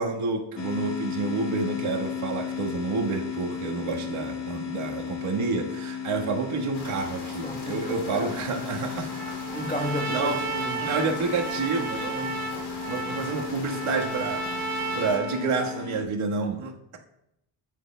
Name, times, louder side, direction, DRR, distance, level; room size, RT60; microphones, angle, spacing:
voice 1, 0.0-9.4 10.1-10.4 10.8-12.4 12.9-14.6 14.9-17.0, right 4 dB, 80° right, 0 dB, 1.5 m, -29 dB
sound 1, 0.6-16.0, left 7 dB, 60° left, 1.9 m, -35 dB
sound 2, 6.7-15.2, left 2 dB, 90° left, 2.9 m, -41 dB
voice 2, 7.4-8.4 9.5-10.9, left 1 dB, 15° left, 3 dB, 1.2 m, -33 dB
Trumpet, 9.1-15.9, right 3 dB, 35° right, 1.3 m, -33 dB
14.0 x 9.9 x 2.2 m, 0.83 s
wide cardioid pair, 125°, 48 cm